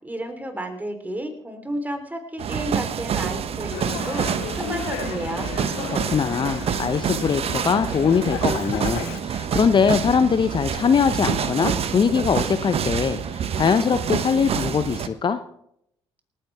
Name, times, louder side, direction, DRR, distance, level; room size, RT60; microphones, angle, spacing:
voice 1, 0.0-5.5, right 1 dB, 10° right, 6 dB, 3.8 m, -32 dB
sound 1, 2.4-15.1, right 8 dB, 50° right, 1.1 m, -27 dB
Dog, 3.7-9.2, left 11 dB, 70° left, 1.1 m, -35 dB
voice 2, 5.8-15.4, left 6 dB, 35° left, 11 dB, 0.9 m, -22 dB
28.0 x 10.0 x 3.6 m, 0.74 s
figure-of-eight pair, 45°, 13 cm